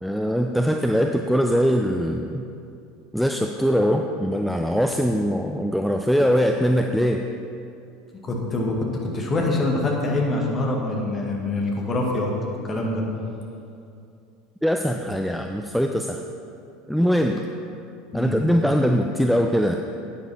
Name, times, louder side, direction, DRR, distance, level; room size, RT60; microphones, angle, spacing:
voice 1, 0.0-2.4 3.1-7.2 14.6-16.2 16.9-17.4 18.1-19.8, equal, ahead, 4 dB, 0.4 m, -22 dB
voice 2, 8.2-8.7 9.1-12.3 12.6-13.0 18.1-18.4, left 2 dB, 25° left, -1 dB, 1.9 m, -24 dB
9.9 x 9.1 x 4.3 m, 2.6 s
figure-of-eight pair, 75°, 0 cm